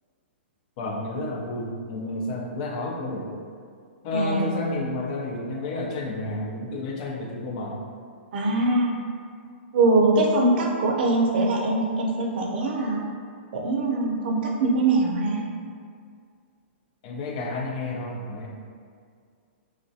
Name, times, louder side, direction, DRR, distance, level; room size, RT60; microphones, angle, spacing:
voice 1, 0.8-3.4 4.0-7.8 17.0-18.5, left 2 dB, 35° left, 0 dB, 0.4 m, -31 dB
voice 2, 4.1-4.5 8.3-9.0 9.7-13.0 13.5-15.4, right 2 dB, 50° right, -1 dB, 0.5 m, -22 dB
3.1 x 2.3 x 2.6 m, 2.1 s
hypercardioid pair, 160°, 7 cm